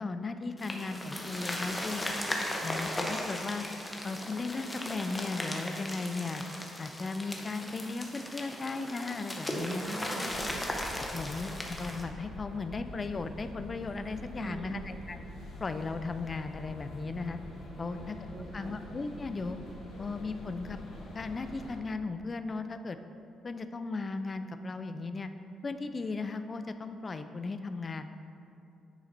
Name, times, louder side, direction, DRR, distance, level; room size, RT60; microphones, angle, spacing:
voice 1, 0.0-2.0 2.5-3.6 4.0-6.4 6.8-10.0 10.3-10.4 11.0-15.2 15.6-17.4 17.8-18.2 18.5-19.6 20.0-20.8 21.1-23.0 23.4-25.3 25.6-28.1, left 3 dB, 35° left, 9 dB, 0.3 m, -36 dB
sound 1, 0.6-12.0, left 1 dB, 15° left, 0.7 m, -37 dB
voice 2, 1.9-2.7 9.5-10.6 14.4-14.9 17.7-18.8, right 3 dB, 50° right, 5 dB, 0.5 m, -44 dB
sound 2, 10.3-21.8, left 1 dB, 75° left, 1.1 m, -46 dB
9.0 x 4.1 x 2.6 m, 2.7 s
cardioid pair, 90°, 0 cm